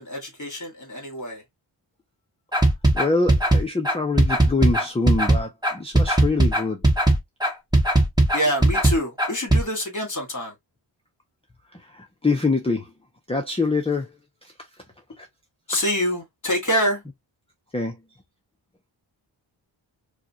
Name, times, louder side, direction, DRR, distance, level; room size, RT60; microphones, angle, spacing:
voice 1, 0.0-1.4 8.3-10.5 15.7-17.0, equal, 40° left, 2.0 m, -26 dB
sound 1, 2.5-9.6, right 1 dB, 10° right, 1.0 m, -18 dB
voice 2, 2.9-6.9 11.7-12.9 13.3-14.5 15.2-15.3 17.7-18.0, left 3 dB, 15° left, 0.5 m, -25 dB
4.7 x 2.1 x 2.8 m
wide cardioid pair, 115°, 46 cm